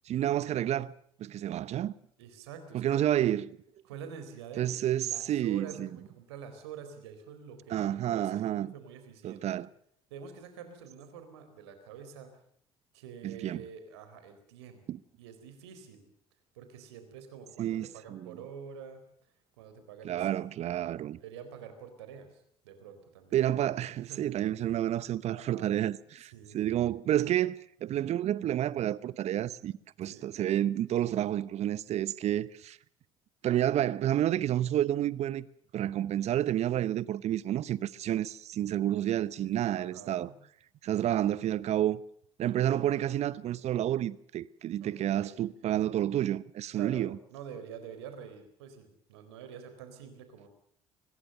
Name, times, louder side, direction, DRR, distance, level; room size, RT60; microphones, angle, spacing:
voice 1, 0.1-0.9 1.2-1.9 2.7-3.4 4.6-5.9 7.7-8.7 9.2-9.7 13.2-13.6 14.9-15.0 17.6-18.3 20.0-21.2 23.3-32.8 33.4-35.5 35.7-40.3 40.8-42.0 42.4-47.2, right 12 dB, 50° right, 0.9 m, -30 dB
voice 2, 2.2-3.0 3.8-4.7 5.1-9.6 10.1-12.3 12.9-14.8 15.2-16.1 16.5-19.0 19.6-20.5 21.2-23.4 23.8-24.2 24.7-24.8 25.3-25.7 26.2-26.6 30.1-30.3 39.6-40.4 44.8-45.4 46.7-50.5, right 7 dB, 75° right, 4.1 m, -47 dB
23.0 x 20.5 x 6.7 m
hypercardioid pair, 55°, 14 cm